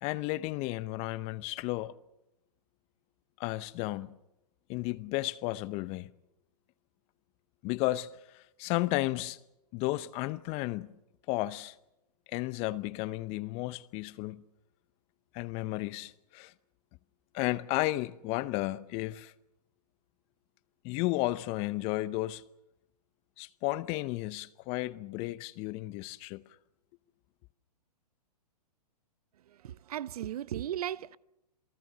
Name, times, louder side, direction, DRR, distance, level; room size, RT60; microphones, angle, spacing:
voice 1, 0.0-2.0 3.4-4.1 4.7-6.1 7.6-9.4 9.7-10.9 11.3-11.8 12.3-14.4 15.3-16.5 17.3-19.3 20.8-22.4 23.4-26.4, left 18 dB, 30° left, 0.7 m, -33 dB
voice 2, 29.6-31.2, right 11 dB, 65° right, 0.7 m, -36 dB
27.5 x 18.5 x 6.8 m
hypercardioid pair, 130°, 21 cm